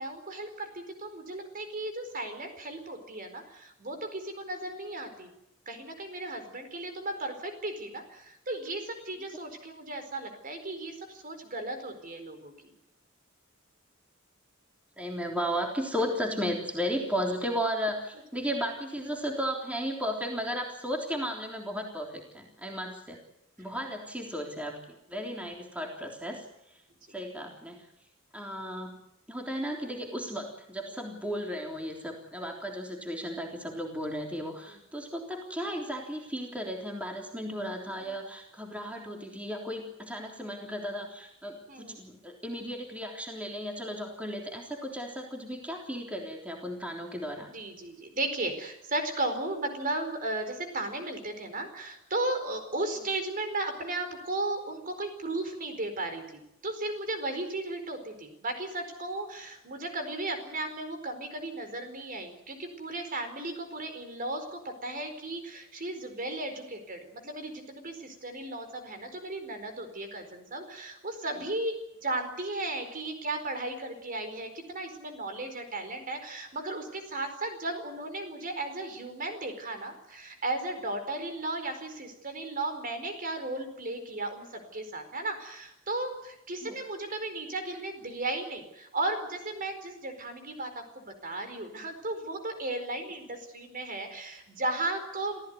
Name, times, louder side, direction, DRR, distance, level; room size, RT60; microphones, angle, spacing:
voice 1, 0.0-5.3 5.7-12.7 27.1-27.2 34.7-34.8 41.7-42.0 44.7-44.8 47.5-71.8 72.0-95.4, right 2 dB, 40° right, 7 dB, 4.5 m, -35 dB
voice 2, 15.0-23.2 23.6-26.4 27.1-27.9 28.3-29.0 29.3-47.5 86.6-86.8, equal, 5° right, 1 dB, 3.5 m, -35 dB
26.5 x 15.5 x 9.5 m, 0.83 s
head